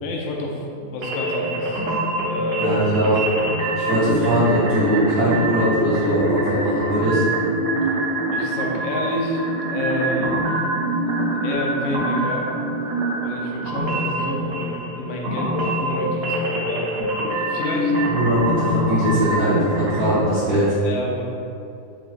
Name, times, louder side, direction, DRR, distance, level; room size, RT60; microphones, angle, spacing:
voice 1, 0.0-1.8 2.2-2.7 8.3-10.4 11.1-12.5 13.2-17.9 20.8-21.2, left 2 dB, 70° left, -1 dB, 0.9 m, -30 dB
sound 1, 1.0-20.2, right 1 dB, 50° right, 0.8 m, -24 dB
voice 2, 2.6-3.2 3.7-7.2 18.1-20.7, right 1 dB, 90° right, -14 dB, 1.7 m, -20 dB
4.5 x 4.4 x 2.5 m, 2.7 s
omnidirectional pair, 1.6 m